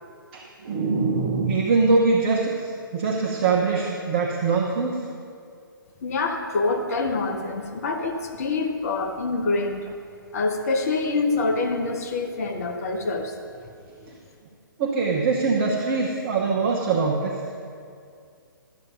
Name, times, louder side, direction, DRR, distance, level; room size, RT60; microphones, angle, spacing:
voice 1, 0.3-5.1 14.1-14.2 14.8-17.4, right 4 dB, 30° right, -1 dB, 0.9 m, -23 dB
voice 2, 6.0-9.8 10.3-13.3, left 3 dB, 45° left, 4 dB, 1.0 m, -26 dB
11.5 x 8.1 x 5.4 m, 2.3 s
figure-of-eight pair, 125°, 12 cm